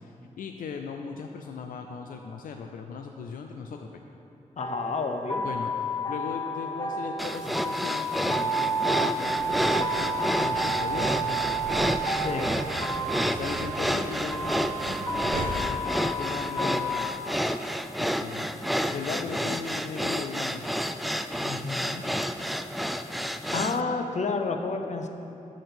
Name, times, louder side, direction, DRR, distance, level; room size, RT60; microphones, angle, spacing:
voice 1, 0.0-3.9 5.3-11.6 13.3-17.1 18.0-18.5 18.9-20.6, left 5 dB, 85° left, 4 dB, 0.4 m, -38 dB
voice 2, 4.6-5.4 12.2-12.6 21.4-22.0 23.5-25.1, left 4 dB, 55° left, 5 dB, 0.7 m, -30 dB
sound 1, 4.6-17.1, right 1 dB, 25° left, 0.8 m, -31 dB
sound 2, 7.2-23.8, equal, ahead, 0.3 m, -30 dB
sound 3, 9.2-15.6, right 3 dB, 90° right, 0.6 m, -39 dB
6.3 x 6.0 x 6.8 m, 2.8 s
cardioid pair, 70°, 14 cm